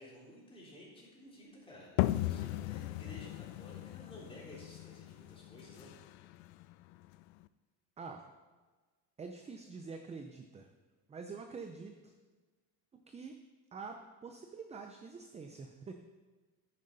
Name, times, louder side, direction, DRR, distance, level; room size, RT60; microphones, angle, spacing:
voice 1, 0.0-5.9, left 1 dB, 15° left, -5 dB, 3.9 m, -53 dB
sound 1, 2.0-7.4, left 16 dB, 85° left, 0.5 m, -37 dB
voice 2, 8.0-8.3 9.2-10.7 11.1-12.1 12.9-13.4 13.7-15.9, right 4 dB, 15° right, 5 dB, 0.5 m, -46 dB
10.5 x 9.6 x 4.1 m, 1.3 s
cardioid pair, 135°, 40 cm